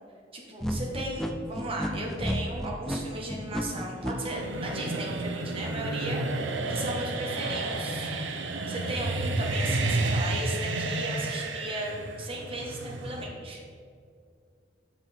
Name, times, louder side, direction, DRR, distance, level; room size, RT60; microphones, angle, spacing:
voice 1, 0.3-6.2 6.7-8.1 8.7-13.6, right 1 dB, 30° right, -2 dB, 1.4 m, -36 dB
sound 1, 0.6-4.1, equal, 5° left, 0.4 m, -32 dB
sound 2, 2.1-13.2, right 2 dB, 80° right, 0.7 m, -31 dB
7.0 x 6.2 x 4.4 m, 2.3 s
head